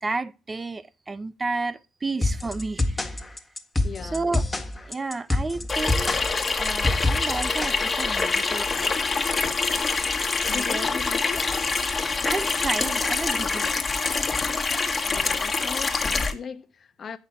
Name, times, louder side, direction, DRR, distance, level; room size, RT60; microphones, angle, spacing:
voice 1, 0.0-3.4 4.0-4.5 4.8-6.1 6.6-8.9 10.5-11.0 12.2-13.7, right 3 dB, 25° right, 0.6 m, -32 dB
sound 1, 2.2-8.2, left 2 dB, 15° left, 1.7 m, -26 dB
voice 2, 3.8-4.3 10.5-11.5 15.0-17.2, left 6 dB, 50° left, 1.0 m, -38 dB
Water tap faucet / Sink (filling or washing), 5.7-16.3, left 4 dB, 35° left, 1.5 m, -25 dB
8.5 x 5.9 x 5.7 m
supercardioid pair, 65°, 0 cm